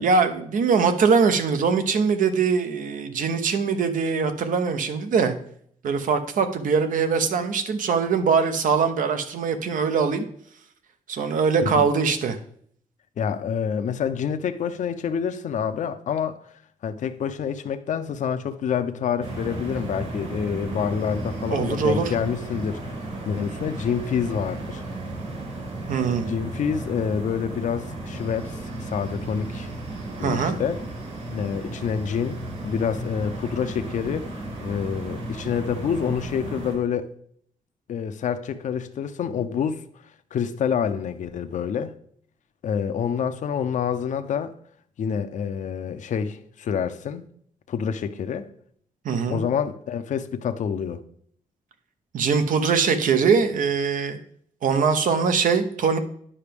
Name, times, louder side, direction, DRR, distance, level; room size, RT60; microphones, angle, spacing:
voice 1, 0.0-5.3 5.8-10.3 11.1-12.4 21.5-22.1 25.9-26.3 30.2-30.6 49.0-49.4 52.1-54.2 54.6-56.0, right 5 dB, 70° right, 0.9 m, -22 dB
voice 2, 13.2-16.4 16.8-22.9 23.2-24.8 26.3-29.7 30.2-30.8 31.3-32.4 32.6-37.1 37.9-39.8 40.3-41.9 42.6-44.5 45.0-47.3 47.7-48.5 49.3-51.0, left 7 dB, 65° left, 0.6 m, -27 dB
sound 1, 19.2-36.7, right 2 dB, 55° right, 3.5 m, -34 dB
9.8 x 5.8 x 3.5 m
cardioid pair, 115°, 14 cm